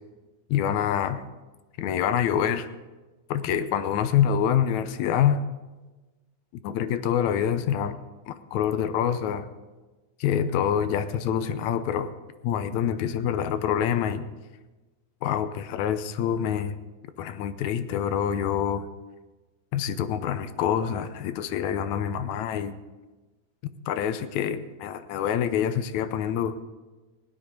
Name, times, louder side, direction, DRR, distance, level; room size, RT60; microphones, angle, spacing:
voice 1, 0.5-1.2 1.8-2.7 3.3-5.4 6.6-8.0 8.3-9.5 10.2-12.1 12.4-14.2 15.2-16.8 17.2-18.9 19.7-22.8 23.9-26.6, left 9 dB, 75° left, 11 dB, 2.0 m, -26 dB
17.5 x 9.9 x 5.2 m, 1.2 s
omnidirectional pair, 3.5 m